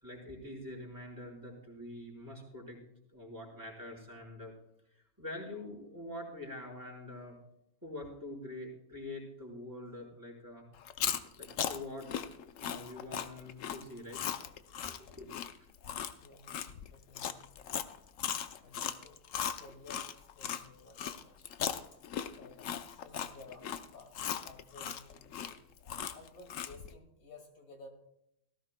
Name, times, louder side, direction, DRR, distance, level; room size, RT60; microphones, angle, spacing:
voice 1, 0.0-4.5 5.2-7.4 7.8-10.7 11.4-12.1 12.6-14.3 14.8-15.3, left 1 dB, 15° right, -3 dB, 4.4 m, -45 dB
Chewing mastication, 10.8-20.6 21.0-26.9, left 9 dB, 70° left, 1.1 m, -38 dB
voice 2, 16.2-17.6 18.6-19.2 19.5-21.4 21.9-22.0 22.3-25.6 26.1-27.9, left 2 dB, 90° left, 3 dB, 2.6 m, -55 dB
18.0 x 15.5 x 2.2 m, 0.79 s
omnidirectional pair, 1.4 m